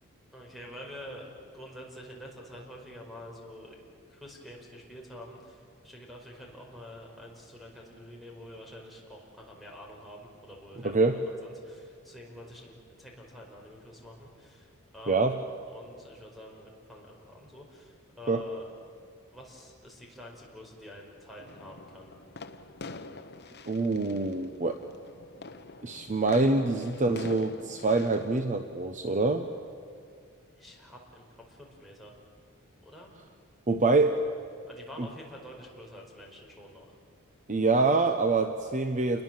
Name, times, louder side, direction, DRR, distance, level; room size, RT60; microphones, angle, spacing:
voice 1, 0.3-3.8 4.1-15.4 15.7-18.7 19.3-22.1 30.6-32.1 32.8-33.1 34.7-36.9, equal, ahead, -2 dB, 5.0 m, -47 dB
voice 2, 10.8-11.2 15.1-15.3 18.3-18.4 23.7-24.8 25.8-29.5 33.7-34.2 35.0-35.1 37.5-39.2, right 3 dB, 35° right, 7 dB, 1.0 m, -25 dB
sound 1, 21.4-28.5, left 3 dB, 50° left, 1.2 m, -46 dB
28.5 x 21.5 x 7.6 m, 2.3 s
head